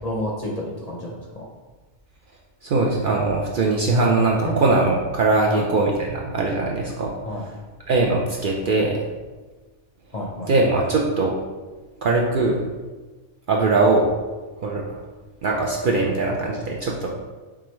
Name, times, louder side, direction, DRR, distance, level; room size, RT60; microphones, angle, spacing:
voice 1, 0.0-1.4 4.4-4.6 5.5-5.7 7.2-7.5 10.1-10.5, left 1 dB, 45° left, -2 dB, 0.6 m, -30 dB
voice 2, 2.6-7.1 7.9-9.0 10.5-11.3 12.0-12.6 13.5-14.1 14.6-15.0 15.4-17.1, right 3 dB, 60° right, -1 dB, 0.6 m, -21 dB
4.8 x 3.5 x 3.0 m, 1.3 s
omnidirectional pair, 1.2 m